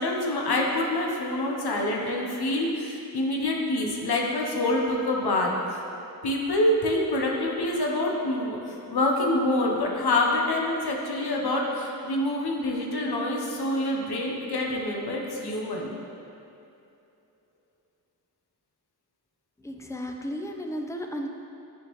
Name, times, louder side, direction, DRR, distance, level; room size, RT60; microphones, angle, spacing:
voice 1, 0.0-5.8 6.2-15.9, left 1 dB, 85° left, -1 dB, 0.7 m, -26 dB
voice 2, 19.6-21.3, equal, 10° left, 2 dB, 0.4 m, -34 dB
8.9 x 3.6 x 2.9 m, 2.8 s
wide cardioid pair, 60°, 37 cm